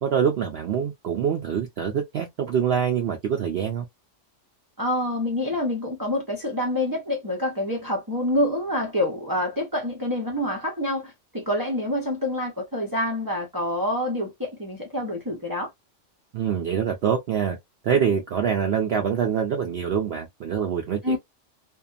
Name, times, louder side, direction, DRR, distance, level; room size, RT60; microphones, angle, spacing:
voice 1, 0.0-3.8 16.3-17.6 17.8-21.2, right 7 dB, 60° right, 0.7 m, -25 dB
voice 2, 4.8-15.7 21.0-21.2, left 1 dB, 25° right, 0.6 m, -27 dB
2.6 x 2.2 x 2.4 m
omnidirectional pair, 1.3 m